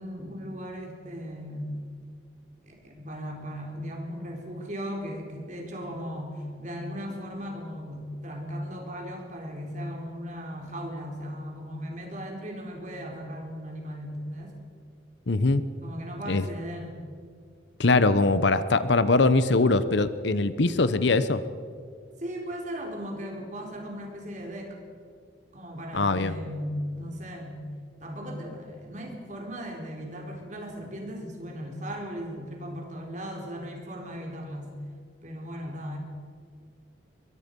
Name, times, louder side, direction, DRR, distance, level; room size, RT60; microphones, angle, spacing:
voice 1, 0.0-1.8 2.6-14.6 15.8-17.0 22.2-24.8 25.5-27.6 28.0-34.8 35.2-36.0, equal, 40° right, 1 dB, 3.9 m, -37 dB
voice 2, 15.3-15.6 16.3-16.5 17.8-21.4 25.9-26.4, left 3 dB, 70° left, 13 dB, 0.9 m, -22 dB
22.5 x 22.5 x 5.4 m, 2.2 s
head